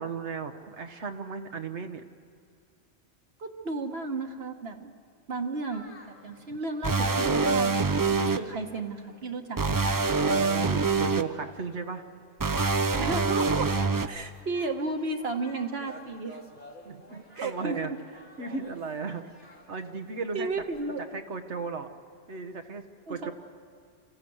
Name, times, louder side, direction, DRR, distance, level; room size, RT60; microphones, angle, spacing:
voice 1, 0.0-2.0 6.5-6.6 10.2-12.0 16.8-17.9 18.4-19.3 19.7-20.5 21.1-21.9 22.3-23.3, right 5 dB, 85° right, 7 dB, 1.4 m, -35 dB
voice 2, 3.4-4.9 5.3-7.7 8.1-9.9 13.0-16.4 17.3-18.0 20.3-21.0 23.1-23.3, right 3 dB, 65° right, 5 dB, 1.6 m, -33 dB
sound 1, 5.7-21.0, left 1 dB, 90° left, 3.1 m, -52 dB
sound 2, 6.8-8.4 9.6-11.2 12.4-14.1, right 4 dB, 30° right, 0.4 m, -25 dB
26.0 x 15.0 x 7.9 m, 2.3 s
omnidirectional pair, 1.1 m